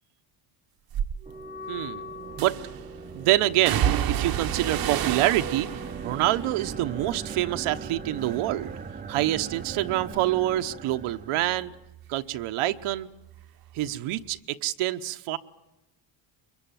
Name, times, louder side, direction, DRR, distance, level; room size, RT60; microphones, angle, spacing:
sound 1, 0.9-1.1 2.4-2.8 3.7-7.9 8.2-8.8 9.2-12.5 12.8-13.9 14.2-14.3, right 10 dB, 45° right, 1.0 m, -32 dB
Wind instrument woodwind instrument, 1.2-8.2, left 1 dB, 85° left, 4.2 m, -45 dB
sound 2, 1.3-11.8, right 6 dB, 15° right, 0.8 m, -40 dB
voice 1, 1.7-2.1 2.4-2.6 3.1-5.7 6.0-8.7 9.1-11.7 12.1-13.1 13.7-15.4, right 15 dB, 75° right, 9 dB, 1.1 m, -26 dB
23.5 x 23.0 x 9.2 m, 1.0 s
cardioid pair, 125°, 50 cm